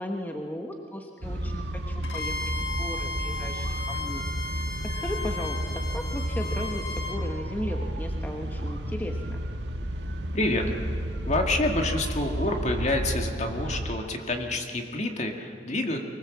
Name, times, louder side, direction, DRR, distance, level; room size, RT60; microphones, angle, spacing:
voice 1, 0.0-2.3 2.8-4.5 4.8-9.4, left 1 dB, 10° left, 2 dB, 1.2 m, -36 dB
sound 1, 1.2-13.9, equal, 80° right, 1.6 m, -32 dB
Bowed string instrument, 2.0-7.2, left 2 dB, 75° left, 2.0 m, -35 dB
voice 2, 10.3-10.7 11.3-16.0, left 2 dB, 40° left, 3 dB, 2.0 m, -28 dB
24.0 x 20.0 x 7.4 m, 2.5 s
head